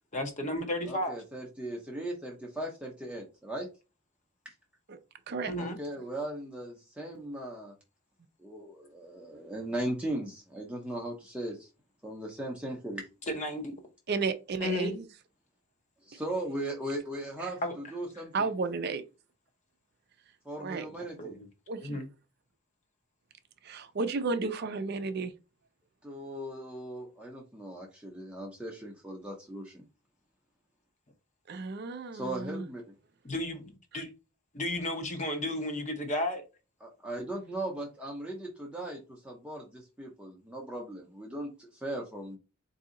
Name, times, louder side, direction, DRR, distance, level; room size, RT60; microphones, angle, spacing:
voice 1, 0.1-1.2 5.5-5.8 13.3-13.7 14.6-15.0 17.6-17.7 21.0-21.5 21.8-22.1 33.2-34.1 34.5-36.4, left 1 dB, 35° left, 0.8 m, -33 dB
voice 2, 0.8-3.7 4.4-4.5 5.5-7.7 8.4-11.7 12.0-13.1 16.0-18.5 20.4-21.4 26.0-29.8 32.1-32.8 36.8-42.4, right 1 dB, 5° right, 0.7 m, -38 dB
voice 3, 14.1-15.1 18.3-19.0 20.6-20.9 21.7-22.0 23.6-25.3 31.5-32.7 33.9-34.0, right 4 dB, 50° right, 0.5 m, -33 dB
4.0 x 2.7 x 3.7 m
head